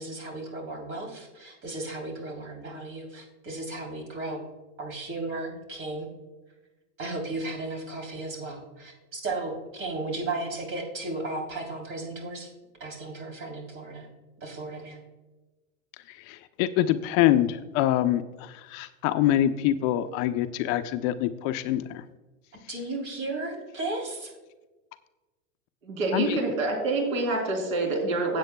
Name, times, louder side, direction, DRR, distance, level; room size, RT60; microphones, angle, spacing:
voice 1, 0.0-4.4 4.8-6.1 7.0-12.5 12.8-14.1 14.4-15.0 22.7-24.3, right 2 dB, 30° right, 1 dB, 3.4 m, -35 dB
voice 2, 16.3-18.2 18.7-22.0 26.1-26.4, left 12 dB, 40° left, 10 dB, 0.5 m, -25 dB
voice 3, 25.8-28.4, right 3 dB, 85° right, 2 dB, 3.5 m, -27 dB
16.5 x 8.2 x 2.3 m, 1.1 s
hypercardioid pair, 120°, 40 cm